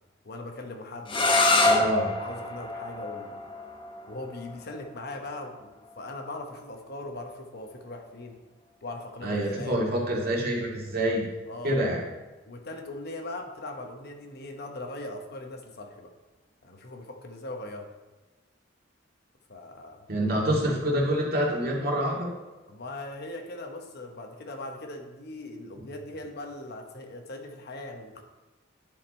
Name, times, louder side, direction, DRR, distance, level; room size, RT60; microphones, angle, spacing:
voice 1, 0.2-1.9 2.2-3.4 4.1-8.4 8.8-9.8 11.5-11.8 12.5-16.1 16.6-17.9 19.5-20.0 22.7-28.2, left 2 dB, 55° left, 4 dB, 1.0 m, -40 dB
sound 1, 1.1-6.8, left 2 dB, 25° left, 1.0 m, -27 dB
voice 2, 1.6-2.1 9.2-11.3 11.6-12.0 20.1-22.3, right 1 dB, 50° right, -3 dB, 2.2 m, -26 dB
11.0 x 5.0 x 4.2 m, 1.2 s
head